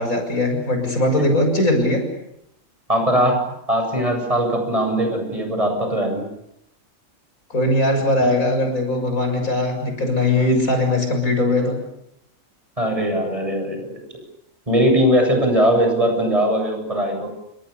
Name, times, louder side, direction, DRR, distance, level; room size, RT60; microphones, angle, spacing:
voice 1, 0.0-2.0 7.5-11.8, left 1 dB, 90° left, 5 dB, 7.5 m, -20 dB
voice 2, 2.9-6.2 12.8-14.0 14.7-17.3, equal, 25° right, 4 dB, 8.1 m, -20 dB
29.5 x 26.5 x 7.0 m, 0.80 s
omnidirectional pair, 1.4 m